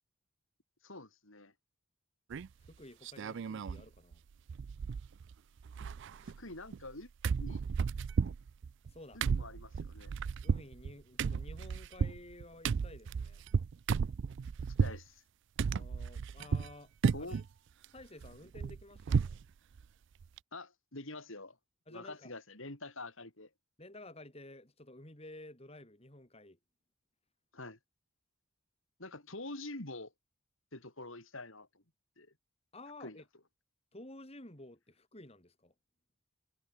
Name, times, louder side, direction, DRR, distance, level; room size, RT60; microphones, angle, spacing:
voice 1, 0.8-1.5 6.2-7.1 7.4-7.6 9.1-10.1 14.8-15.2 17.1-17.4 20.5-21.6 21.9-23.5 27.5-27.8 29.0-30.1 30.7-31.8 32.2-32.3 33.0-33.2, left 2 dB, 65° left, 4.5 m, -46 dB
sound 1, 2.3-2.7 3.0-3.8 4.1-4.2 4.5-5.3 5.6-6.9 7.2-15.0 15.6-16.7 17.0-17.5 17.8-19.4 19.8-19.9 20.2-20.4, right 5 dB, 55° right, 0.4 m, -34 dB
voice 2, 2.6-4.2 8.8-9.2 10.4-13.4 15.7-16.9 17.2-17.4 17.9-19.4 21.9-22.3 23.8-26.6 32.7-33.2 33.9-35.7, left 1 dB, 30° left, 3.4 m, -52 dB
head